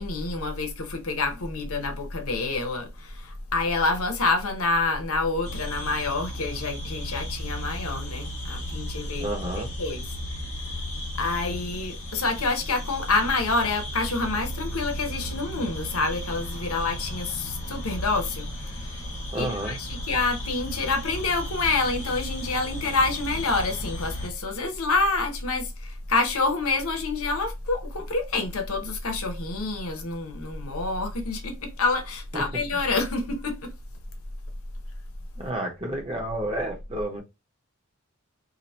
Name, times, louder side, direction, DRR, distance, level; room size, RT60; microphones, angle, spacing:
voice 1, 0.0-10.1 11.2-19.0 19.3-33.7, left 3 dB, 85° left, 0.9 m, -27 dB
sound 1, 5.4-24.3, equal, 35° left, 1.0 m, -36 dB
voice 2, 9.2-9.7 19.3-19.8 32.3-32.4 35.4-37.2, right 1 dB, 25° right, 1.0 m, -30 dB
2.8 x 2.7 x 4.2 m
head